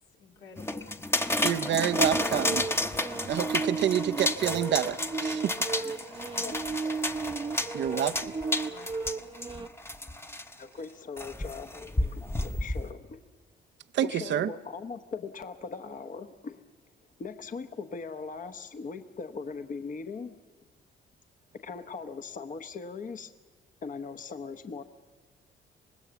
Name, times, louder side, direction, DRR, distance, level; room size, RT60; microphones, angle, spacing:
voice 1, 0.1-1.0 6.4-7.3 7.6-9.2, left 4 dB, 80° left, 0 dB, 3.4 m, -49 dB
sound 1, 0.6-10.5 11.2-12.9, left 1 dB, 10° left, 0.9 m, -31 dB
voice 2, 1.4-2.6 3.3-5.5 7.7-8.3 13.9-14.5, right 10 dB, 65° right, 10 dB, 0.7 m, -28 dB
sound 2, 1.9-9.7, right 4 dB, 25° right, 0.8 m, -35 dB
voice 3, 10.6-11.7 12.1-13.2 14.0-16.6 17.2-20.4 21.6-23.3 23.8-24.8, left 5 dB, 40° left, 8 dB, 1.0 m, -39 dB
25.0 x 19.5 x 7.0 m, 1.3 s
cardioid pair, 90°, 20 cm